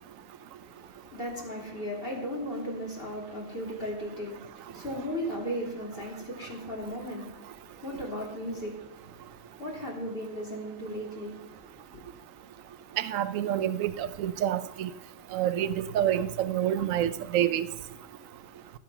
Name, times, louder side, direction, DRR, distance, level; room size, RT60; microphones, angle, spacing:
voice 1, 0.7-12.0, equal, 40° left, -3 dB, 3.5 m, -37 dB
voice 2, 13.0-14.9 15.3-17.7, right 11 dB, 75° right, 13 dB, 1.0 m, -28 dB
17.5 x 7.9 x 5.7 m, 0.95 s
omnidirectional pair, 1.4 m